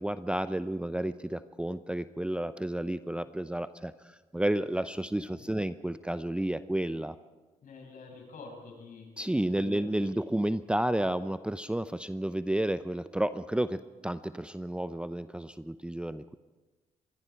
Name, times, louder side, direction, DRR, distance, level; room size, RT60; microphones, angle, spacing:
voice 1, 0.0-7.2 9.2-16.4, right 1 dB, 5° right, 13 dB, 0.7 m, -31 dB
voice 2, 7.6-9.1 9.6-10.4, left 4 dB, 60° left, 2 dB, 7.0 m, -47 dB
25.5 x 21.5 x 4.7 m, 1.2 s
hypercardioid pair, 55°, 16 cm